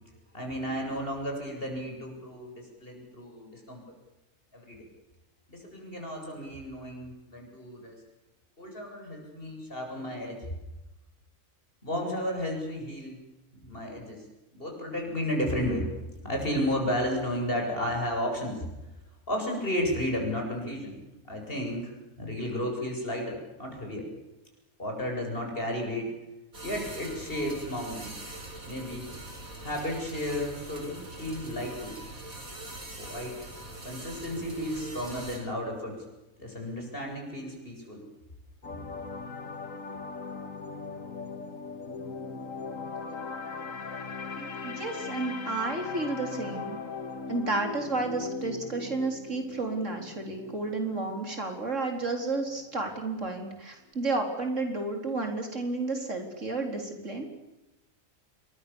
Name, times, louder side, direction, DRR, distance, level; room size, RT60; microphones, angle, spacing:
voice 1, 0.3-3.8 4.5-4.9 5.5-8.0 8.6-10.4 11.8-13.2 13.6-14.2 14.5-15.9 16.2-18.6 19.3-21.0 21.3-21.9 22.2-24.1 24.8-26.1 26.6-28.2 28.6-29.1 29.6-32.0 33.0-33.5 33.8-36.0 36.4-38.0, equal, 40° left, 1 dB, 8.0 m, -33 dB
sound 1, 26.5-35.4, right 2 dB, 80° right, 5.4 m, -43 dB
sound 2, 38.6-52.8 53.1-53.3, left 4 dB, 70° left, 2.3 m, -39 dB
voice 2, 44.3-46.8 47.3-57.3, right 3 dB, 60° right, 4 dB, 4.5 m, -32 dB
28.0 x 23.5 x 7.2 m, 1.0 s
omnidirectional pair, 1.4 m